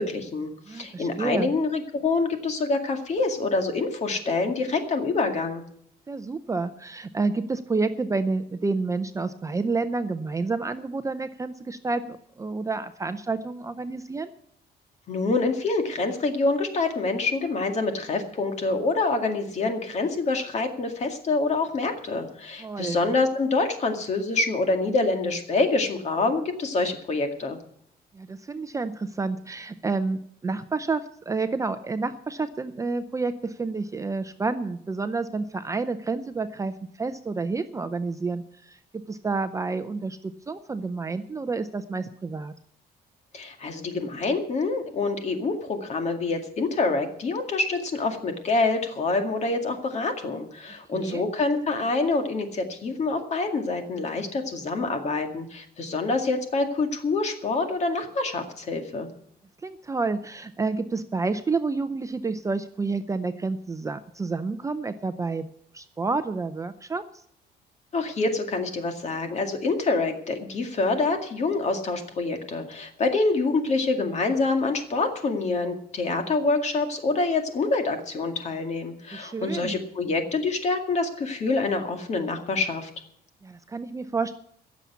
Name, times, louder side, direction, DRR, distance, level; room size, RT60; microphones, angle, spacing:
voice 1, 0.0-5.6 15.1-27.6 43.3-59.1 67.9-82.9, left 3 dB, 40° left, 5 dB, 2.1 m, -26 dB
voice 2, 0.7-1.5 6.1-14.3 22.6-23.0 28.1-38.8 39.1-42.5 50.9-51.2 59.6-65.5 65.7-67.0 79.1-79.8 83.4-84.4, right 3 dB, 20° right, 10 dB, 0.5 m, -29 dB
16.0 x 7.2 x 8.2 m, 0.70 s
cardioid pair, 150°, 17 cm